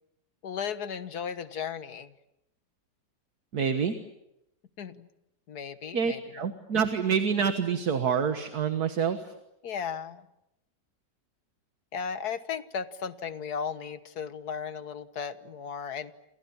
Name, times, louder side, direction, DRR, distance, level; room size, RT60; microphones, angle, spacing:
voice 1, 0.4-2.1 4.8-5.1 5.5-6.4 9.6-10.2 11.9-16.2, left 7 dB, 65° left, 12 dB, 1.8 m, -35 dB
voice 2, 3.5-3.9 5.9-9.2, right 6 dB, 60° right, 8 dB, 2.0 m, -27 dB
28.5 x 28.0 x 7.1 m, 0.85 s
omnidirectional pair, 1.9 m